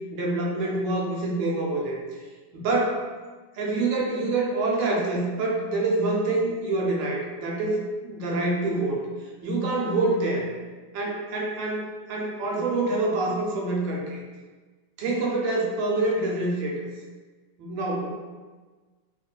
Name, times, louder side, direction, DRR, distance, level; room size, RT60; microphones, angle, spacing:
voice 1, 0.1-2.0 2.5-3.0 3.5-9.1 9.4-10.5 10.9-14.2 15.0-16.9 17.6-18.1, right 2 dB, 80° right, -2 dB, 1.3 m, -26 dB
2.9 x 2.7 x 2.3 m, 1.3 s
omnidirectional pair, 2.0 m